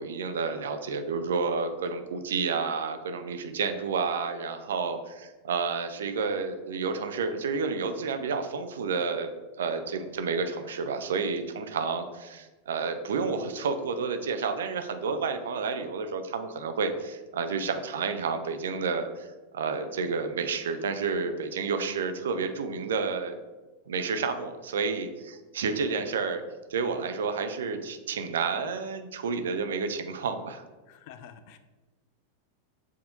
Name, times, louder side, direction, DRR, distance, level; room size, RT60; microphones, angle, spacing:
voice 1, 0.0-9.3 9.6-23.4 23.9-26.4 26.7-30.6, right 5 dB, 60° right, 7 dB, 0.4 m, -30 dB
voice 2, 30.9-31.6, left 8 dB, 45° left, 10 dB, 0.3 m, -48 dB
7.2 x 2.7 x 2.6 m, 1.2 s
figure-of-eight pair, 90°, 0 cm